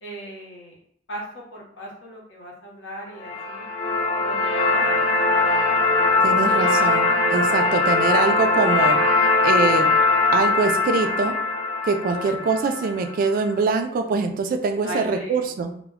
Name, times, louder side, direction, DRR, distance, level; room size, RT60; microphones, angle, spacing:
voice 1, 0.0-0.8 1.1-3.7 4.2-5.0 12.1-12.5 14.8-15.5, equal, 85° left, -2 dB, 0.8 m, -37 dB
sound 1, 3.2-13.3, left 3 dB, 30° left, 0.4 m, -21 dB
voice 2, 6.2-9.9 10.3-11.4 11.8-15.7, right 4 dB, 50° right, 5 dB, 0.3 m, -24 dB
2.2 x 2.1 x 3.4 m, 0.66 s
head